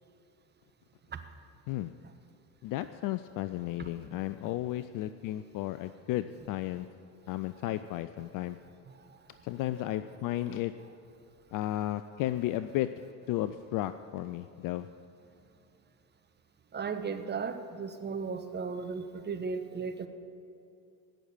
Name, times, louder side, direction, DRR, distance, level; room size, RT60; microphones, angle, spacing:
voice 1, 2.6-6.9 7.3-8.6 9.4-10.7 11.5-12.9 13.3-14.9, left 14 dB, 45° left, 13 dB, 0.5 m, -33 dB
voice 2, 16.7-20.1, right 5 dB, 20° right, 8 dB, 1.1 m, -35 dB
17.0 x 6.4 x 8.7 m, 2.6 s
hypercardioid pair, 75°, 50 cm